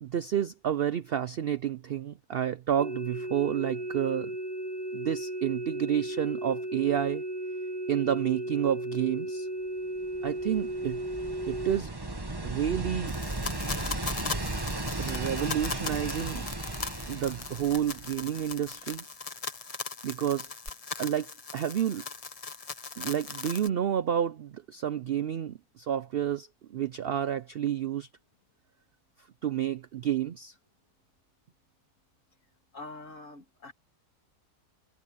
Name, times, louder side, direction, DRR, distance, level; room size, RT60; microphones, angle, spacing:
voice 1, 0.0-4.3 4.9-7.2 7.9-9.5 10.2-11.0 11.5-11.9 12.4-13.2 15.0-16.5 17.1-19.0 20.0-20.5 21.0-22.0 23.0-28.1 29.4-30.5, right 10 dB, 75° right, 0.5 m, -30 dB
sound 1, 2.8-11.8, right 1 dB, 35° right, 1.4 m, -35 dB
sound 2, 10.0-18.5 20.7-20.8, right 2 dB, 15° right, 1.3 m, -36 dB
sound 3, 13.1-23.7, left 4 dB, 30° left, 0.8 m, -39 dB
voice 2, 32.7-33.7, left 2 dB, 55° left, 3.2 m, -44 dB
omnidirectional pair, 1.6 m